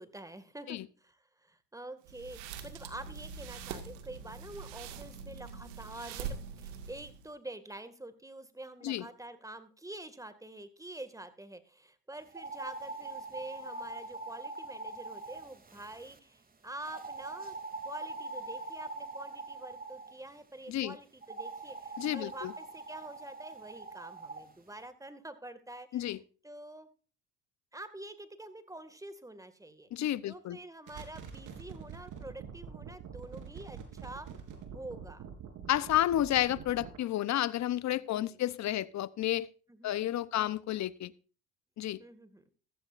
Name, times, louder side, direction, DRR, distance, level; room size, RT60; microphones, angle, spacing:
voice 1, 0.0-17.6 17.8-26.2 26.4-26.9 27.7-29.9 30.3-34.3 34.7-35.2 37.9-38.4 39.8-40.2 42.0-42.4, right 2 dB, 10° right, 2.1 m, -47 dB
sound 1, 2.0-7.3, right 6 dB, 90° right, 2.1 m, -43 dB
sound 2, 12.3-16.2 16.8-20.1 21.2-24.4, right 3 dB, 25° right, 2.9 m, -43 dB
voice 2, 22.0-22.5 25.9-26.2 29.9-30.6 35.7-39.5 39.8-41.1 41.8-42.0, left 13 dB, 50° left, 0.9 m, -31 dB
sound 3, 30.9-37.0, right 7 dB, 60° right, 3.8 m, -46 dB
14.5 x 14.5 x 2.6 m
supercardioid pair, 80°, 36 cm